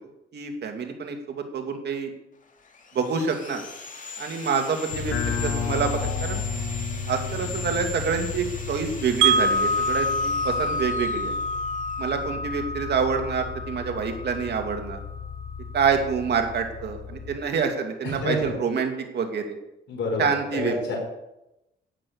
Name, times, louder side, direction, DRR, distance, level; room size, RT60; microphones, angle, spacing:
voice 1, 0.3-2.1 2.9-3.6 4.2-6.4 7.1-11.3 12.0-15.0 15.7-19.6 20.2-20.8, right 6 dB, 60° right, 5 dB, 2.4 m, -27 dB
Sawing, 2.4-12.3, left 4 dB, 40° left, 2.4 m, -40 dB
sound 1, 4.9-17.4, left 5 dB, 85° left, 1.3 m, -34 dB
Wind chime, 9.2-15.2, right 1 dB, 90° right, 1.2 m, -27 dB
voice 2, 18.0-18.5 19.9-20.3 20.5-21.0, left 2 dB, 65° left, 1 dB, 4.5 m, -27 dB
11.5 x 9.0 x 6.9 m, 0.90 s
cardioid pair, 90°, 20 cm